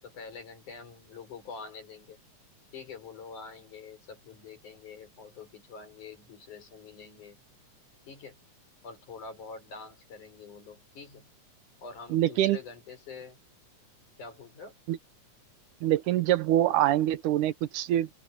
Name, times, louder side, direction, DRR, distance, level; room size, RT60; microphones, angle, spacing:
voice 1, 0.0-2.2 2.7-7.4 8.0-8.4 8.8-11.3 11.8-13.4 14.2-14.8, left 5 dB, 75° left, 6.9 m, -46 dB
voice 2, 12.1-12.6 14.9-15.0 15.8-18.1, right 13 dB, 80° right, 2.4 m, -25 dB
open air
omnidirectional pair, 3.5 m